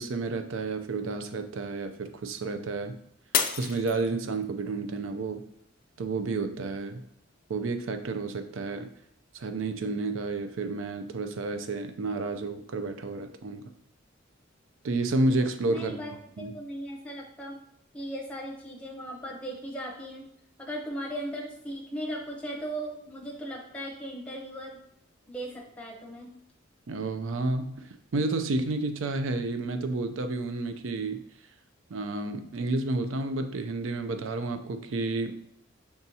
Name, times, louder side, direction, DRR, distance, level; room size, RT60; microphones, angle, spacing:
voice 1, 0.0-2.9 3.5-5.4 6.0-7.0 7.5-8.9 9.3-13.7 14.8-16.0 16.4-16.5 26.9-27.7 28.1-31.2 31.9-35.4, right 3 dB, 70° right, 8 dB, 0.5 m, -30 dB
Shatter, 3.3-4.6 5.2-5.6 6.2-6.3, left 8 dB, 40° left, 0.3 m, -30 dB
voice 2, 15.7-16.1 16.5-17.6 17.9-20.3 20.6-24.8 25.3-26.3, equal, 5° left, -2 dB, 0.9 m, -37 dB
5.4 x 3.5 x 2.8 m, 0.72 s
head